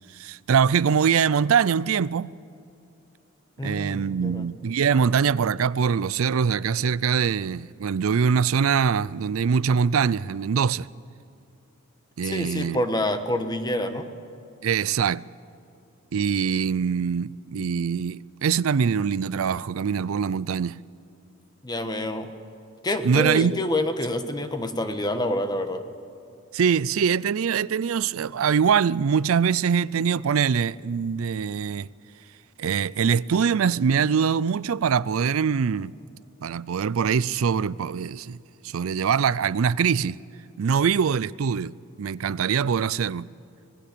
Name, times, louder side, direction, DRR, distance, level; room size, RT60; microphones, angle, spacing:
voice 1, 0.1-2.3 3.6-10.9 12.2-12.8 14.6-15.2 16.1-20.8 23.0-23.6 26.5-31.9 32.6-35.9 36.4-38.4 38.6-40.2 40.6-41.7 42.0-43.3, right 6 dB, 90° right, 0.4 m, -23 dB
voice 2, 3.6-4.5 12.2-14.0 21.6-22.3 22.8-25.8, left 1 dB, 20° left, 1.3 m, -27 dB
26.0 x 20.0 x 6.8 m
head